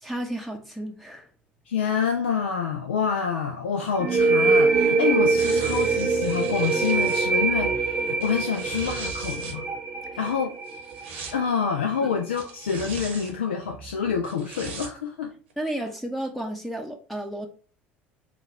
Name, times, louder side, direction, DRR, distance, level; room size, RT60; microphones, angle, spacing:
voice 1, 0.0-1.3 12.0-12.2 15.6-17.5, right 1 dB, ahead, 0.7 m, -32 dB
voice 2, 1.7-9.6 10.2-10.5 11.3-15.3, left 6 dB, 80° left, 0.4 m, -27 dB
sound 1, 4.0-11.4, right 4 dB, 35° right, 0.8 m, -23 dB
sound 2, 5.4-7.3 8.1-9.6 10.7-11.4 12.3-13.3 14.2-14.9 15.5-15.6, right 5 dB, 75° right, 1.0 m, -39 dB
3.8 x 2.4 x 4.1 m
figure-of-eight pair, 65°, 6 cm